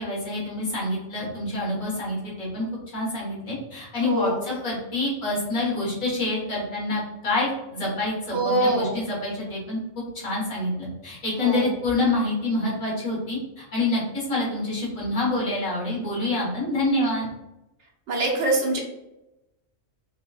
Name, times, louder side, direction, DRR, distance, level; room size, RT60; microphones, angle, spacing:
voice 1, 0.0-2.6 2.9-9.8 10.1-17.3, left 2 dB, 80° left, -6 dB, 2.1 m, -27 dB
voice 2, 4.0-4.5 8.3-9.1 11.4-11.7 18.1-18.8, right 1 dB, 60° right, -1 dB, 1.1 m, -24 dB
4.8 x 2.7 x 2.4 m, 0.93 s
omnidirectional pair, 1.4 m